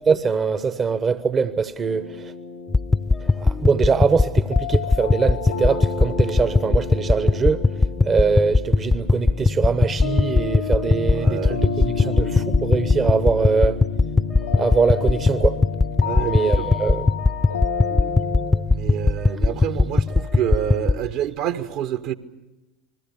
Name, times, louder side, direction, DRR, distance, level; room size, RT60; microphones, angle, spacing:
voice 1, 0.1-2.3 3.3-7.6 8.0-13.8 14.5-15.6 16.2-17.1, right 5 dB, 30° right, 1.0 m, -22 dB
sound 1, 1.8-18.5, left 6 dB, 80° left, 2.3 m, -31 dB
sound 2, 2.7-21.0, left 3 dB, 15° left, 0.7 m, -20 dB
voice 2, 11.1-12.2 16.0-16.6 18.6-22.1, right 11 dB, 60° right, 1.3 m, -28 dB
29.0 x 21.0 x 7.0 m
figure-of-eight pair, 70°, 0 cm